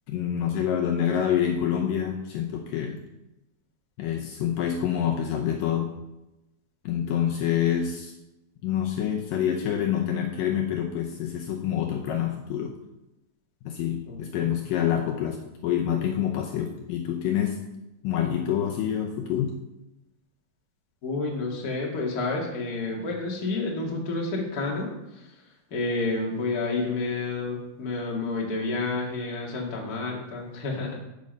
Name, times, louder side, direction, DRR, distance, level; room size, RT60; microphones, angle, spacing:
voice 1, 0.1-3.0 4.0-5.9 6.9-8.1 8.6-12.8 13.7-17.6 18.0-19.5, left 9 dB, 75° left, 2 dB, 2.3 m, -27 dB
voice 2, 14.1-14.5 21.0-25.4 25.7-31.0, left 3 dB, 30° left, -2 dB, 2.0 m, -30 dB
14.5 x 5.6 x 5.3 m, 0.95 s
omnidirectional pair, 4.3 m